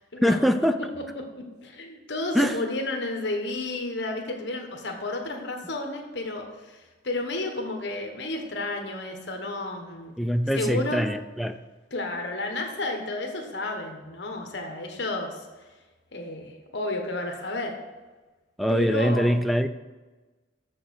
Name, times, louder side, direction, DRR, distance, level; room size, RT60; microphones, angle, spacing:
voice 1, 0.2-0.8 2.3-2.6 10.2-11.6 18.6-19.7, equal, ahead, 8 dB, 0.3 m, -23 dB
voice 2, 1.0-1.3 1.6-10.1 10.5-11.0 11.9-15.5 16.1-17.7 18.7-19.4, left 2 dB, 60° left, 3 dB, 1.2 m, -32 dB
6.9 x 6.4 x 6.4 m, 1.2 s
head